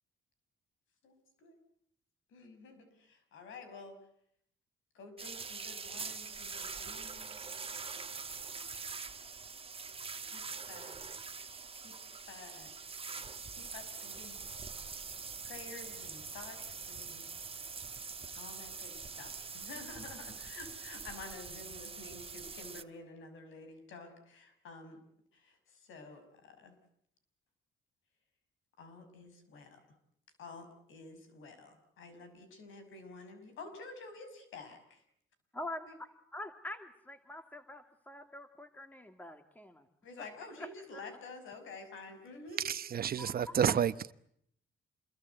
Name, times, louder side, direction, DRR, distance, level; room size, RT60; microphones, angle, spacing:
voice 1, 1.0-1.6 2.3-4.0 4.9-7.4 10.2-11.0 11.8-11.9 12.3-12.8 13.5-14.4 15.4-17.3 18.3-25.0 25.3-26.8 28.8-29.8 30.4-35.0 35.9-36.0 40.0-42.6, left 3 dB, 80° left, 5.9 m, -50 dB
sound 1, 5.2-22.8, right 5 dB, 30° right, 1.4 m, -44 dB
voice 2, 35.5-35.9 36.3-39.9 40.2-40.3 40.6-41.0 43.2-43.8, left 1 dB, 10° left, 1.9 m, -45 dB
voice 3, 42.6-44.1, right 8 dB, 50° right, 1.0 m, -30 dB
28.0 x 22.0 x 8.1 m
cardioid pair, 90°, 20 cm